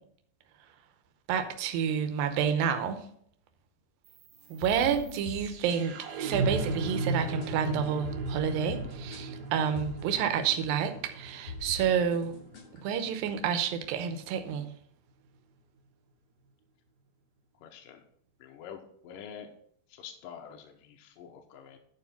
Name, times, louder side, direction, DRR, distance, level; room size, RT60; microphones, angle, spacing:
voice 1, 1.3-3.0 4.5-12.3 12.7-14.7, right 7 dB, 80° right, 8 dB, 2.6 m, -29 dB
sound 1, 4.1-14.1, right 3 dB, 65° right, 1.9 m, -37 dB
sound 2, 4.4-10.9 11.3-12.8, left 4 dB, 45° left, 3.1 m, -44 dB
voice 2, 17.6-18.0 18.4-19.5 19.9-21.8, left 8 dB, 75° left, 3 dB, 2.3 m, -46 dB
11.0 x 4.5 x 5.8 m, 0.64 s
omnidirectional pair, 4.2 m